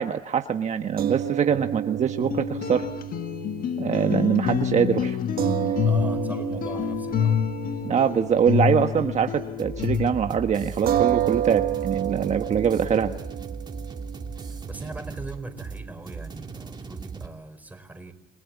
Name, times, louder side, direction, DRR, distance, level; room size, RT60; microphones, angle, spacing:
voice 1, 0.0-2.9 3.8-5.2 7.8-13.1, right 8 dB, 45° right, 5 dB, 1.3 m, -23 dB
sound 1, 1.0-9.5 9.8-10.0 10.9-17.4, right 11 dB, 65° right, 1.5 m, -31 dB
sound 2, 2.2-10.4, left 8 dB, 55° left, 1.5 m, -27 dB
voice 2, 5.8-7.4 14.6-18.1, right 2 dB, 10° right, 7 dB, 4.7 m, -40 dB
sound 3, 9.6-17.3, right 4 dB, 25° right, 2.2 m, -37 dB
29.0 x 20.0 x 8.4 m, 0.89 s
cardioid pair, 110°, 17 cm